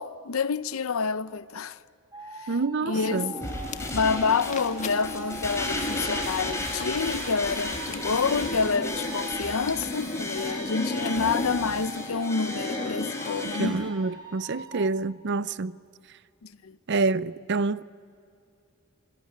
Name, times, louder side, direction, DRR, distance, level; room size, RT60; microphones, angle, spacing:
voice 1, 0.0-1.8 2.4-2.5 2.8-3.3 3.9-13.8 16.4-16.8, left 5 dB, 85° left, 0.7 m, -28 dB
sound 1, 2.1-9.7 10.4-13.0 13.5-14.9, right 2 dB, 20° right, 2.0 m, -42 dB
voice 2, 2.5-3.3 13.6-15.8 16.9-17.8, right 3 dB, 55° right, 0.6 m, -27 dB
sound 2, 2.9-13.9, left 2 dB, 35° left, 1.4 m, -35 dB
sound 3, 3.4-13.7, left 2 dB, 15° left, 4.3 m, -35 dB
26.5 x 21.5 x 9.5 m
head